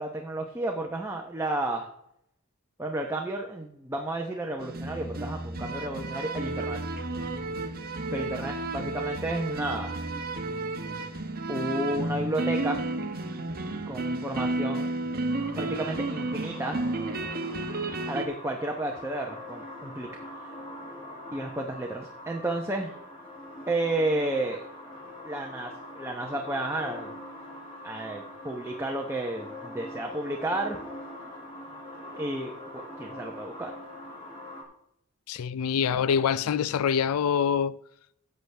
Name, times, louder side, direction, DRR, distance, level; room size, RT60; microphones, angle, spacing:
voice 1, 0.0-1.9 2.8-6.8 8.1-10.0 11.5-12.8 13.9-14.9 15.6-16.8 18.1-20.5 21.3-23.0 23.7-24.6 25.2-27.2 27.8-30.8 32.2-33.7 35.8-36.1, right 1 dB, 10° right, 0.9 m, -32 dB
sound 1, 4.6-18.3, right 2 dB, 45° right, 1.0 m, -32 dB
sound 2, 15.3-34.6, left 1 dB, 25° left, 2.5 m, -43 dB
voice 2, 35.3-37.8, left 7 dB, 80° left, 0.4 m, -25 dB
14.0 x 8.1 x 3.4 m
head